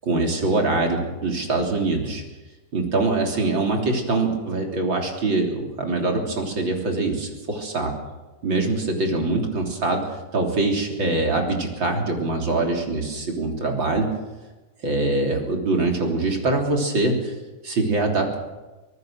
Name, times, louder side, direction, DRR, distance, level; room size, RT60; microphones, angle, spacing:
voice 1, 0.0-2.2 2.7-8.0 8.4-14.1 14.8-17.3 17.6-18.4, right 2 dB, 35° right, 1 dB, 3.8 m, -23 dB
25.0 x 19.0 x 6.5 m, 1.1 s
omnidirectional pair, 3.8 m